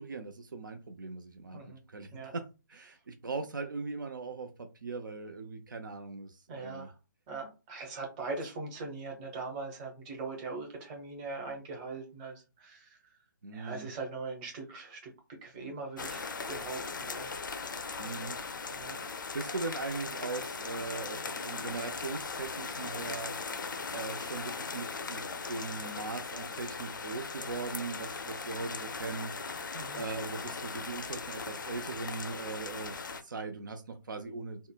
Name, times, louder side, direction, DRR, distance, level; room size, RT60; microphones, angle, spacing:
voice 1, 0.0-1.6 1.9-2.4 2.7-6.9 13.4-13.9 18.0-18.4 19.3-23.7 23.9-25.2 25.5-29.6 30.0-32.9 33.2-34.6, right 4 dB, 70° right, 6 dB, 0.5 m, -39 dB
voice 2, 6.5-6.9 7.3-13.0 13.5-17.3 18.7-19.0 29.7-30.0, right 3 dB, 25° right, 1 dB, 1.0 m, -41 dB
sound 1, 16.0-33.2, left 4 dB, 70° left, 0.5 m, -39 dB
3.7 x 2.0 x 2.2 m, 0.29 s
figure-of-eight pair, 145°, 11 cm